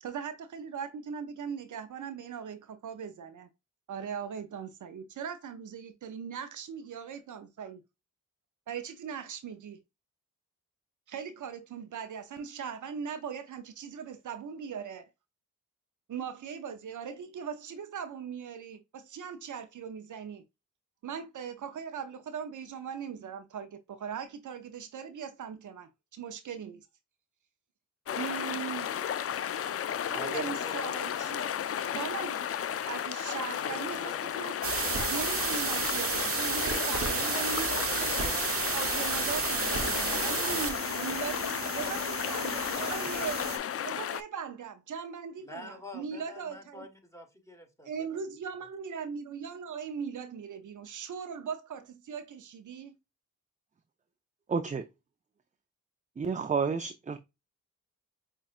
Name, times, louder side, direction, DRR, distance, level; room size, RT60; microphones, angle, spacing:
voice 1, 0.0-3.5 3.9-7.8 8.7-9.8 11.1-15.1 16.1-20.4 21.0-26.9 28.2-28.9 30.1-31.5 31.9-32.4 32.9-34.6 35.1-38.3 38.7-43.5 43.8-46.9 47.8-53.0, right 7 dB, 65° right, 0.6 m, -39 dB
sound 1, 28.1-44.2, left 9 dB, 45° left, 0.4 m, -33 dB
voice 2, 30.1-30.9 33.6-34.2 36.5-38.9 40.3-40.6 41.0-41.3 45.4-47.9, equal, 10° left, 1.5 m, -46 dB
sound 2, 34.6-43.6, right 5 dB, 45° right, 1.0 m, -32 dB
voice 3, 54.5-54.8 56.2-57.2, right 5 dB, 25° right, 0.4 m, -30 dB
5.7 x 2.4 x 2.4 m
cardioid pair, 50°, 33 cm